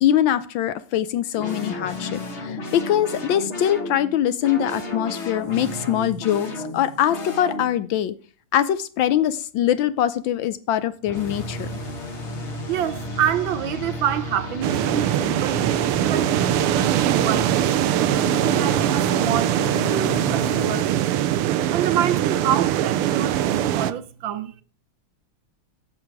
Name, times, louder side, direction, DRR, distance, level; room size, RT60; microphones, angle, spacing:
voice 1, 0.0-8.1 8.5-11.8, left 11 dB, 70° left, 1.2 m, -23 dB
sound 1, 1.4-7.9 11.0-20.8, left 1 dB, 35° left, 1.8 m, -32 dB
voice 2, 12.7-21.0 21.7-24.6, right 10 dB, 70° right, 1.4 m, -27 dB
sound 2, 14.6-23.9, right 12 dB, 85° right, 1.6 m, -22 dB
11.5 x 7.8 x 4.7 m
omnidirectional pair, 2.4 m